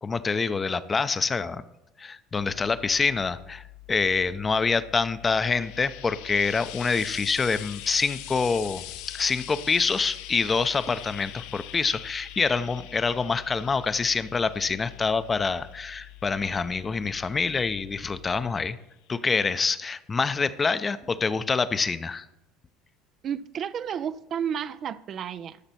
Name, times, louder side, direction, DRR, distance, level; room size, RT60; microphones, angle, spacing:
voice 1, 0.0-1.6 2.0-18.8 19.1-22.3, left 4 dB, 25° left, 0.6 m, -26 dB
sound 1, 2.3-18.5, left 16 dB, 90° left, 1.4 m, -48 dB
Frying (food), 5.2-18.5 19.4-19.5, left 13 dB, 70° left, 0.6 m, -43 dB
voice 2, 23.2-25.6, right 8 dB, 45° right, 0.4 m, -32 dB
13.5 x 6.0 x 4.3 m
hypercardioid pair, 75°, 0 cm